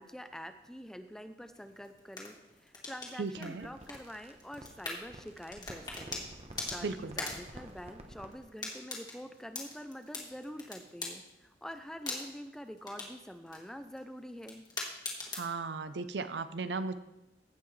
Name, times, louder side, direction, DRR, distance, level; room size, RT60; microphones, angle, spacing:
voice 1, 0.0-6.3 6.7-14.6, equal, 5° left, 9 dB, 0.5 m, -46 dB
sound 1, 1.5-15.6, left 3 dB, 25° left, 1.6 m, -44 dB
voice 2, 3.2-3.7 6.8-7.2 15.3-16.9, right 4 dB, 75° right, 12 dB, 0.5 m, -36 dB
sound 2, 3.4-8.4, right 1 dB, 40° right, 0.9 m, -50 dB
16.0 x 5.8 x 3.2 m, 0.91 s
head